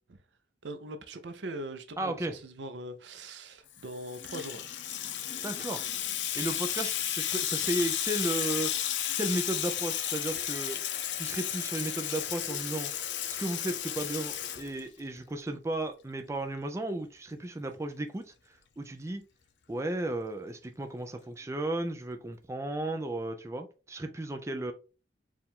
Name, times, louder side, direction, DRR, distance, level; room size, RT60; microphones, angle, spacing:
voice 1, 0.6-4.7, right 1 dB, 80° right, 0.6 m, -41 dB
voice 2, 2.0-2.3 5.4-5.8 6.3-8.7 9.1-10.8 11.2-12.9 13.3-18.3 18.8-19.2 19.7-24.7, right 1 dB, 15° right, 0.4 m, -34 dB
Water tap faucet / Sink (filling or washing), 3.8-15.2, left 10 dB, 85° left, 0.5 m, -33 dB
4.6 x 2.4 x 3.5 m
head